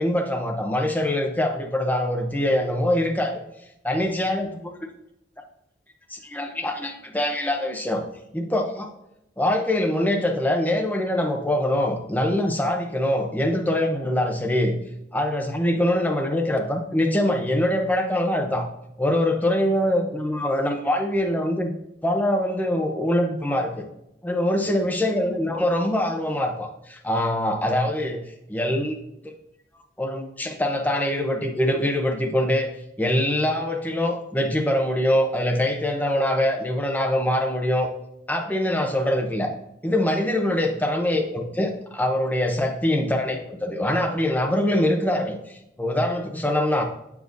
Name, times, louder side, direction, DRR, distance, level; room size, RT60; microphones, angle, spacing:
voice 1, 0.0-3.4 3.8-4.7 6.1-8.0 8.3-8.9 9.4-14.8 15.1-18.7 19.0-21.7 22.0-23.8 24.2-28.2 28.5-28.9 30.0-32.7 33.0-37.9 38.3-39.5 39.8-46.8, left 1 dB, 10° left, 2 dB, 0.7 m, -23 dB
7.8 x 7.2 x 2.6 m, 0.84 s
head